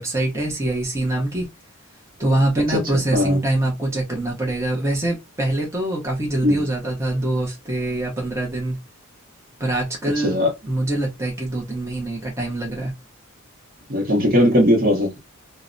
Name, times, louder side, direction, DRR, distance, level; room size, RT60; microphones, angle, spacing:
voice 1, 0.0-1.5 2.2-8.8 9.6-10.4 10.6-12.9, right 1 dB, 15° right, 0.6 m, -24 dB
voice 2, 13.9-15.2, left 1 dB, 40° right, 0.8 m, -18 dB
2.7 x 2.0 x 2.5 m
head